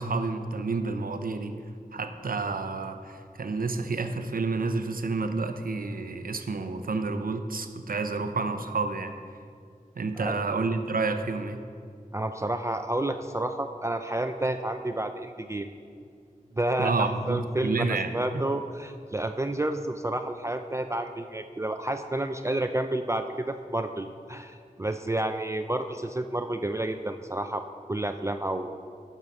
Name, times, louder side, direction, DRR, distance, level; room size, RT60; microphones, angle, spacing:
voice 1, 0.0-1.6 1.9-9.1 10.0-11.6 16.8-18.1, right 3 dB, 75° right, 8 dB, 0.6 m, -29 dB
voice 2, 12.1-15.7 16.6-27.6 27.9-28.7, right 1 dB, 20° right, 6 dB, 0.4 m, -30 dB
9.4 x 5.6 x 6.1 m, 2.3 s
wide cardioid pair, 45°, 15 cm